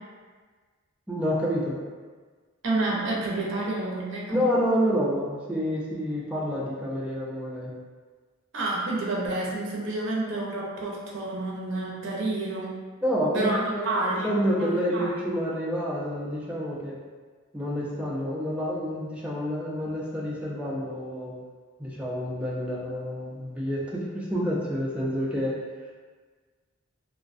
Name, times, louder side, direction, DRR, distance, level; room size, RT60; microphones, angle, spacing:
voice 1, 1.1-1.8 4.3-7.7 13.0-13.9 14.2-17.0 17.5-21.3 21.8-25.6, equal, 5° right, -5 dB, 0.3 m, -28 dB
voice 2, 2.6-4.4 8.5-12.8 13.3-14.3 14.6-15.2, right 2 dB, 65° right, -4 dB, 0.5 m, -29 dB
2.3 x 2.2 x 2.5 m, 1.5 s
head